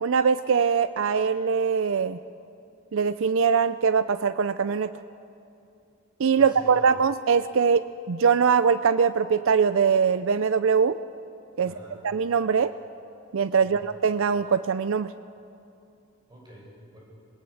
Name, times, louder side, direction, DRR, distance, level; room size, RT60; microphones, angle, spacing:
voice 1, 0.0-2.2 2.9-4.9 6.2-11.0 11.6-11.7 12.0-12.7 13.3-15.1, right 6 dB, 60° right, 13 dB, 0.5 m, -22 dB
voice 2, 6.4-7.0 11.6-12.0 13.6-13.8 16.3-17.0, equal, 20° right, -4 dB, 7.5 m, -47 dB
26.5 x 21.0 x 7.1 m, 2.7 s
head